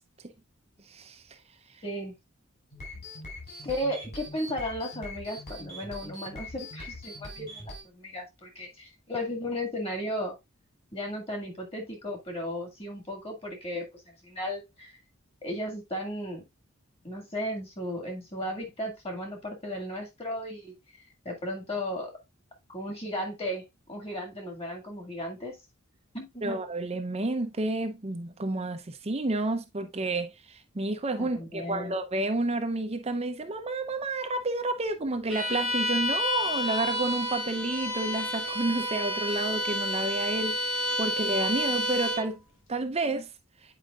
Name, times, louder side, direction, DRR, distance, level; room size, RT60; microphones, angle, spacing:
voice 1, 0.9-1.2 26.4-42.4 42.7-43.3, right 2 dB, 30° right, 0.6 m, -30 dB
voice 2, 1.8-2.2 3.6-10.4 10.9-14.9 15.4-16.4 17.0-20.7 21.3-22.1 22.7-25.6 26.1-26.6 31.2-31.9, equal, 30° left, 2.0 m, -35 dB
sound 1, 2.7-7.8, left 1 dB, 50° left, 4.6 m, -42 dB
Bowed string instrument, 35.3-42.3, equal, 65° left, 2.0 m, -30 dB
9.1 x 4.9 x 2.4 m
head